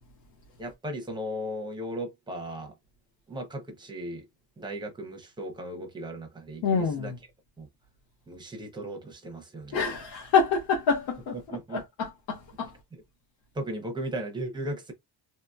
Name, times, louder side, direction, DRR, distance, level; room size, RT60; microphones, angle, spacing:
voice 1, 0.6-2.7 3.3-4.2 4.6-7.1 7.6-7.7 8.3-9.8 11.3-11.8 12.9-13.0 13.5-14.9, right 1 dB, 10° right, 0.6 m, -36 dB
voice 2, 6.6-7.2 9.7-11.4 11.7-12.7, left 5 dB, 85° left, 1.1 m, -26 dB
2.9 x 2.8 x 2.3 m
cardioid pair, 165°, 41 cm